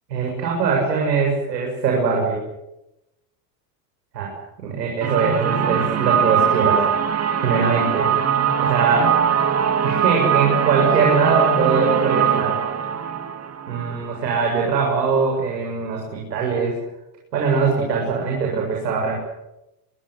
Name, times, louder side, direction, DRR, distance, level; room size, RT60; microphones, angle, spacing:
voice 1, 0.1-2.4 4.1-6.8 7.4-8.1 8.6-9.2 9.8-12.6 13.7-16.8 17.3-19.1, right 5 dB, 90° right, -1 dB, 7.4 m, -22 dB
sound 1, 5.0-14.7, right 8 dB, 30° right, 2.9 m, -21 dB
25.0 x 23.0 x 8.0 m, 0.93 s
hypercardioid pair, 85°, 48 cm